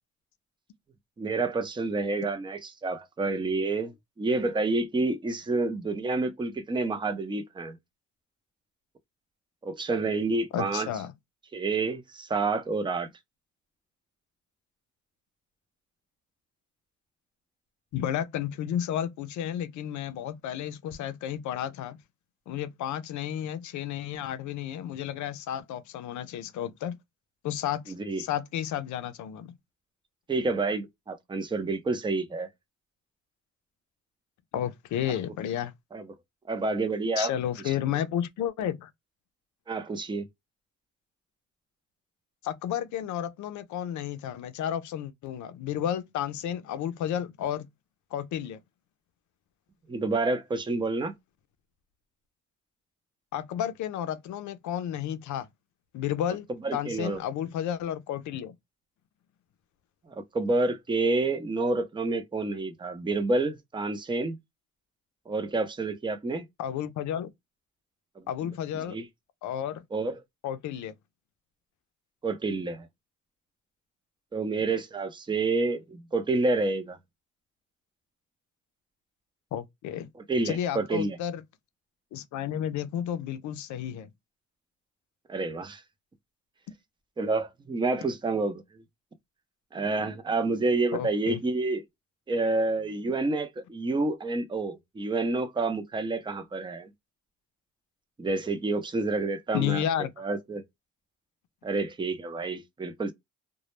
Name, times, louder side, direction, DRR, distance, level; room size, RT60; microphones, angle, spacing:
voice 1, 1.2-3.9 4.2-7.8 9.6-10.9 11.5-13.1 27.9-28.2 30.3-32.5 35.9-36.0 36.5-37.3 37.7-37.8 39.7-40.3 49.9-51.1 56.6-57.2 60.1-64.4 65.3-66.4 68.2-68.3 68.7-69.1 69.9-70.2 72.2-72.9 74.3-77.0 80.3-81.2 85.3-85.8 87.2-88.6 89.7-91.8 92.3-96.9 98.2-99.8 100.2-100.6 101.6-103.1, right 3 dB, 15° right, 0.5 m, -28 dB
voice 2, 10.5-11.1 17.9-22.0 22.5-27.0 27.4-29.5 34.5-35.7 37.2-38.9 42.4-47.7 48.1-48.6 53.3-55.5 55.9-58.6 66.6-67.3 68.3-69.0 69.4-69.8 70.4-70.9 79.5-80.1 80.4-81.4 82.1-84.1 90.9-91.4 99.5-100.1, left 10 dB, 75° left, 0.5 m, -32 dB
2.2 x 2.0 x 3.0 m
cardioid pair, 90°, 30 cm